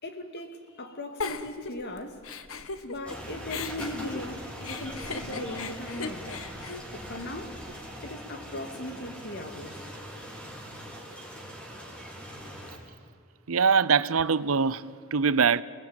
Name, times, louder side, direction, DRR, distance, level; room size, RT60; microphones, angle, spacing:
voice 1, 0.0-2.3 2.8-6.5 6.9-7.6 8.0-9.9 10.1-10.3, left 1 dB, 55° left, 2.4 m, -39 dB
Giggle, 1.2-3.2 3.5-7.7, left 4 dB, 80° left, 1.4 m, -38 dB
sound 1, 3.0-12.8, equal, 5° left, 4.1 m, -41 dB
voice 2, 13.5-15.6, right 5 dB, 75° right, 0.7 m, -23 dB
28.5 x 19.0 x 8.9 m
head